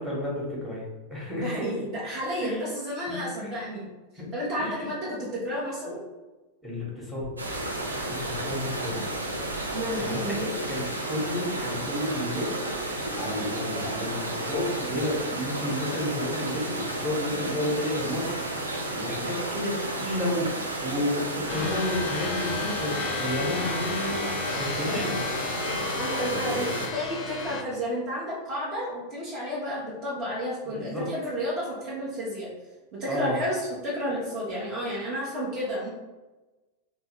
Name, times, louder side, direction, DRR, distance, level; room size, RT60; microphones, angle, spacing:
voice 1, 0.0-1.7 2.4-2.7 3.1-3.5 4.2-4.3 4.6-4.9 6.6-7.3 8.1-9.0 10.0-10.4 10.7-12.5 12.8-18.4 18.9-25.2 26.2-26.8 30.7-31.1 33.1-33.4, left 1 dB, 5° right, -5 dB, 1.3 m, -31 dB
voice 2, 1.4-3.9 4.3-6.0 9.7-10.5 26.0-32.5 32.9-35.9, equal, 35° right, -6 dB, 1.0 m, -31 dB
sound 1, 7.4-26.9, right 1 dB, 80° right, 0.6 m, -32 dB
sound 2, 21.5-27.6, left 5 dB, 35° left, 0.5 m, -33 dB
3.3 x 2.8 x 3.2 m, 1.1 s
figure-of-eight pair, 90°, 0 cm